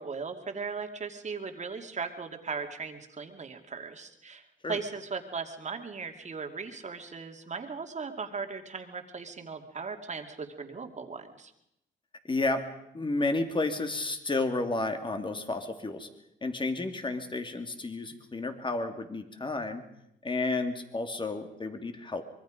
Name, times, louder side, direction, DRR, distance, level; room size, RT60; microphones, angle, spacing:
voice 1, 0.0-4.4 4.7-11.5, right 5 dB, 35° right, 5 dB, 2.6 m, -38 dB
voice 2, 12.2-12.7 12.9-16.1 16.4-19.8 20.2-22.2, left 2 dB, 25° left, 7 dB, 2.8 m, -31 dB
25.0 x 22.0 x 5.2 m, 0.81 s
cardioid pair, 90°, 20 cm